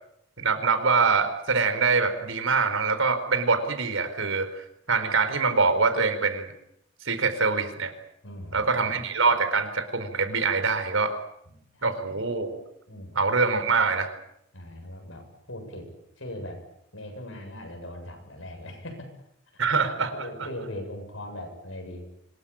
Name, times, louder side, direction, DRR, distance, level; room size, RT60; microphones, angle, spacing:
voice 1, 0.4-6.5 7.0-7.9 8.5-11.1 11.8-12.6 13.1-14.1 19.6-20.5, right 4 dB, 80° right, 10 dB, 4.3 m, -24 dB
voice 2, 8.2-8.7 11.5-12.0 12.9-13.1 14.5-15.9 16.2-16.6 16.9-19.1 20.1-22.0, left 1 dB, 80° left, 4 dB, 7.9 m, -39 dB
25.5 x 21.0 x 8.8 m, 0.75 s
head